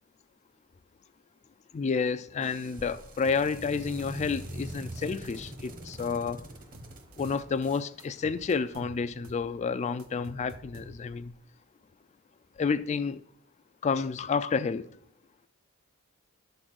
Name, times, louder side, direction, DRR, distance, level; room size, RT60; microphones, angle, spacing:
voice 1, 1.7-6.4 7.2-11.3 12.6-13.2 13.8-14.9, left 5 dB, 30° left, 0.3 m, -30 dB
sound 1, 2.3-8.8, right 1 dB, 40° right, 1.1 m, -44 dB
sound 2, 3.2-3.7 4.0-5.7 6.0-7.7 8.0-9.5 9.7-11.3, right 1 dB, 75° right, 0.9 m, -50 dB
11.5 x 3.9 x 6.2 m
head